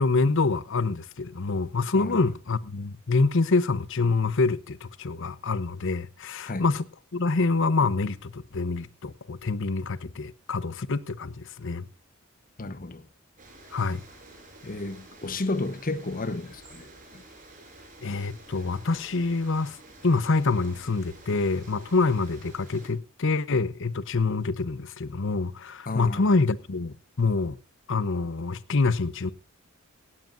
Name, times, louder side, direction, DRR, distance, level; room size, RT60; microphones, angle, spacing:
voice 1, 0.0-6.8 7.1-11.9 13.7-14.0 18.0-19.8 20.0-27.6 27.9-29.3, left 3 dB, 65° left, 0.8 m, -26 dB
voice 2, 12.6-13.1 14.6-16.9 17.1-17.2 25.9-26.4, left 2 dB, 40° left, 1.0 m, -32 dB
sound 1, 13.4-22.9, right 2 dB, 40° right, 6.4 m, -50 dB
17.0 x 16.5 x 2.6 m
head